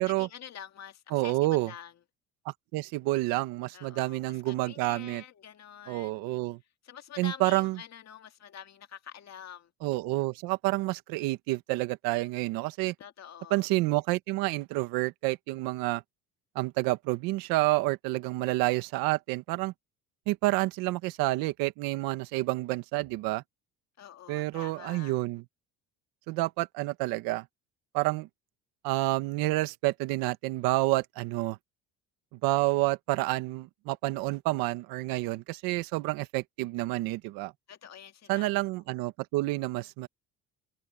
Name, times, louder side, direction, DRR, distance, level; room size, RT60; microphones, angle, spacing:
voice 1, 0.1-1.9 3.7-6.2 6.8-9.7 13.0-13.6 24.0-25.1 37.7-38.5, left 9 dB, 50° left, 2.1 m, -47 dB
voice 2, 1.1-1.7 2.4-5.2 5.9-6.6 7.2-7.8 9.8-12.9 13.5-16.0 16.5-19.7 20.3-23.4 24.3-25.4 26.3-27.4 27.9-28.3 28.8-31.6 32.4-37.5 38.3-40.1, right 20 dB, 90° right, 1.4 m, -29 dB
cardioid pair, 90°, 34 cm